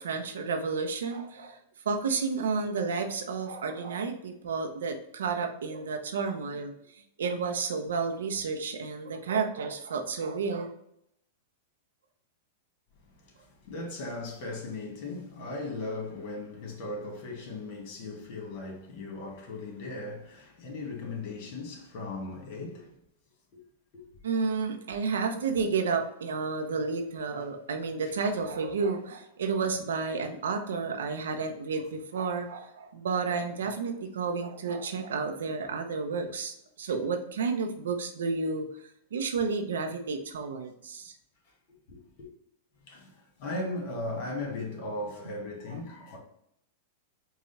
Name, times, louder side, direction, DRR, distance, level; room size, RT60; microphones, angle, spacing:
voice 1, 0.0-1.6 1.9-6.7 7.2-10.7 24.2-38.7 39.1-41.1, right 4 dB, 80° right, 0.7 m, -31 dB
voice 2, 13.2-23.0 23.5-23.6 23.9-24.0 28.1-28.2 41.9-42.3 42.9-46.2, left 2 dB, 55° left, 1.8 m, -38 dB
4.8 x 2.4 x 4.1 m
hypercardioid pair, 115°, 0 cm